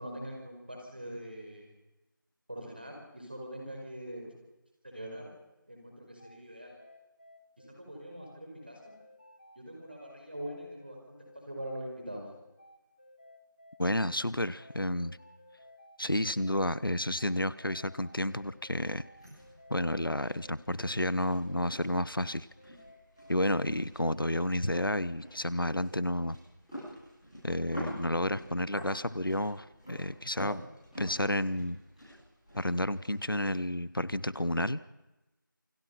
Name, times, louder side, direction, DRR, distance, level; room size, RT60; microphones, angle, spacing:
voice 1, 0.0-1.7 2.5-4.3 4.8-5.3 5.7-6.7 7.6-8.8 9.6-11.0 11.3-12.3, equal, 30° right, 1 dB, 5.3 m, -43 dB
sound 1, 6.2-25.0, left 1 dB, 25° left, 1.8 m, -56 dB
voice 2, 13.8-15.2 16.0-19.0 19.7-22.5 23.3-26.4 27.4-30.6 31.0-31.8 32.6-34.8, left 1 dB, 90° left, 17 dB, 1.2 m, -31 dB
sound 2, 17.9-34.5, equal, ahead, 6.0 m, -48 dB
28.0 x 23.0 x 5.8 m, 1.0 s
figure-of-eight pair, 175°, 11 cm